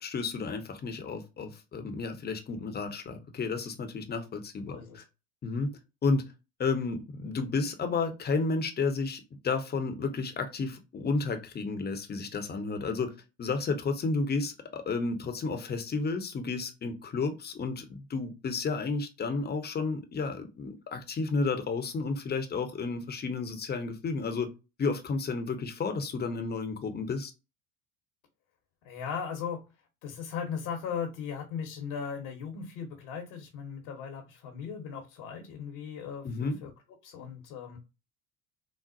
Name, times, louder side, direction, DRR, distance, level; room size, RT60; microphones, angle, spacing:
voice 1, 0.0-5.0 5.4-5.7 6.0-6.3 6.6-13.1 13.4-24.5 24.8-27.3 36.2-36.6, left 4 dB, 25° left, 0.8 m, -32 dB
voice 2, 4.7-5.0 28.8-29.6 30.0-36.7 37.0-37.8, left 7 dB, 65° left, 1.1 m, -38 dB
4.1 x 2.0 x 2.5 m
hypercardioid pair, 80°, 43 cm